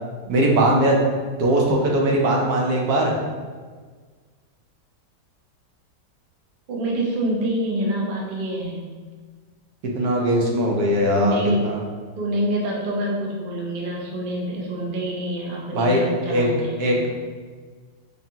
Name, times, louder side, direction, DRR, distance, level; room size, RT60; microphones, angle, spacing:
voice 1, 0.3-1.1 1.4-3.1 10.0-11.8 15.7-16.0 16.3-16.4 16.8-17.1, right 1 dB, 65° right, -1 dB, 1.1 m, -20 dB
voice 2, 6.7-8.9 11.1-11.7 12.2-16.9, right 1 dB, 85° right, -2 dB, 0.4 m, -26 dB
5.4 x 2.3 x 2.8 m, 1.5 s
omnidirectional pair, 1.9 m